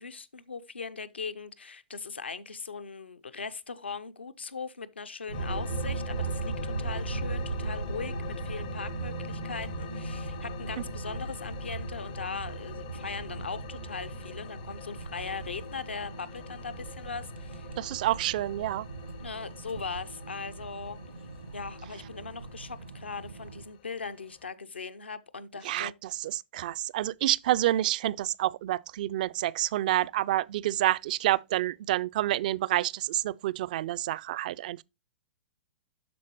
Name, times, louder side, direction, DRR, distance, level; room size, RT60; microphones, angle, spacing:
voice 1, 0.0-17.7 19.2-21.0 21.5-25.9, left 5 dB, 75° left, 0.8 m, -39 dB
sound 1, 5.3-24.5, left 10 dB, 45° left, 0.6 m, -44 dB
sound 2, 5.3-23.6, right 4 dB, 85° right, 1.2 m, -38 dB
voice 2, 17.8-18.8 25.6-25.9 26.2-34.8, right 14 dB, 45° right, 0.3 m, -28 dB
12.0 x 4.2 x 3.0 m
figure-of-eight pair, 110°, 6 cm